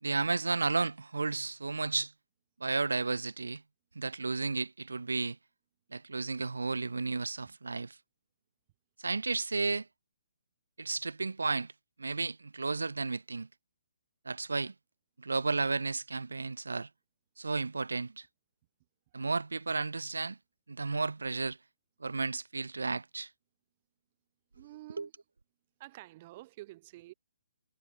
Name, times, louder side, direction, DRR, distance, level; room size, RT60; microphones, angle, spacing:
voice 1, 0.0-2.1 2.6-3.6 3.9-5.4 5.9-8.0 9.0-9.9 10.8-11.7 12.0-13.5 14.2-14.7 15.2-16.9 17.4-18.3 19.1-20.4 20.7-21.6 22.0-23.3 25.0-25.1, right 3 dB, 80° right, 0.6 m, -33 dB
voice 2, 24.5-25.1 25.8-27.1, right 17 dB, 35° right, 5.3 m, -49 dB
figure-of-eight pair, 140°, 0 cm